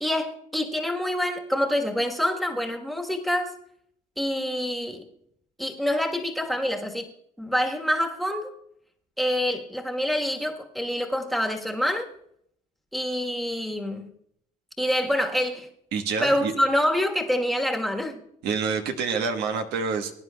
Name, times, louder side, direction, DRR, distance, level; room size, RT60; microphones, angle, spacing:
voice 1, 0.0-3.5 4.2-5.1 5.6-7.1 7.4-8.5 9.2-12.1 12.9-14.1 14.8-15.7 16.2-18.2, equal, ahead, 2 dB, 1.3 m, -26 dB
voice 2, 15.9-16.5 18.4-20.1, right 5 dB, 85° right, 5 dB, 1.2 m, -27 dB
21.0 x 9.7 x 2.3 m, 0.71 s
cardioid pair, 110°, 17 cm